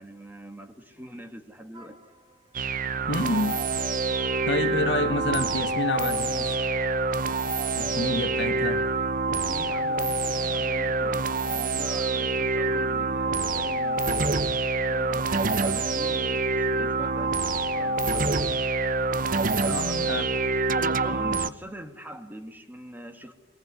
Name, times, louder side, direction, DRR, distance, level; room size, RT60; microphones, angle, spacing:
voice 1, 0.0-2.0 9.3-17.3 17.6-18.5 19.6-19.9 21.0-23.3, equal, 10° right, 2.2 m, -43 dB
sound 1, 1.7-2.6 2.9-5.2 5.5-9.8 10.2-20.8, right 2 dB, 30° right, 2.7 m, -49 dB
sound 2, 2.5-21.5, right 3 dB, 50° right, 0.8 m, -26 dB
voice 2, 3.1-3.6 4.5-6.5 7.8-8.8 19.7-20.2, left 2 dB, 70° left, 2.1 m, -28 dB
23.5 x 19.5 x 9.5 m
head